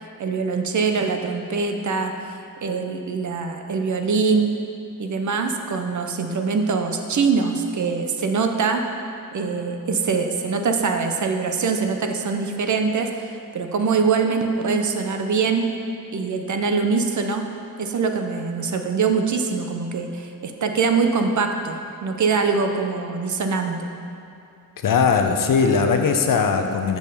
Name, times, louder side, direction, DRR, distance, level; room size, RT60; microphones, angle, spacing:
voice 1, 0.2-4.5 5.0-8.8 9.3-15.7 16.1-17.5 17.8-23.9, right 5 dB, 50° right, 5 dB, 0.8 m, -23 dB
voice 2, 24.8-27.0, left 5 dB, 60° left, 5 dB, 0.8 m, -19 dB
6.2 x 5.4 x 6.8 m, 2.6 s
cardioid pair, 90°, 37 cm